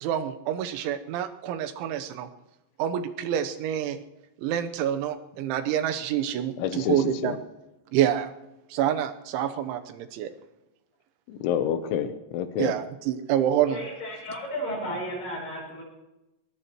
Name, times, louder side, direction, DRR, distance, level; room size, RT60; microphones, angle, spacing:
voice 1, 0.0-2.3 2.8-4.0 4.4-7.4 7.9-8.3 8.7-10.3 12.6-13.8, right 10 dB, 85° right, 8 dB, 3.4 m, -27 dB
voice 2, 6.6-7.4 11.3-12.7, left 9 dB, 85° left, 9 dB, 3.3 m, -28 dB
voice 3, 13.7-15.8, equal, 60° left, -2 dB, 9.2 m, -33 dB
21.5 x 21.0 x 3.1 m, 0.96 s
omnidirectional pair, 5.3 m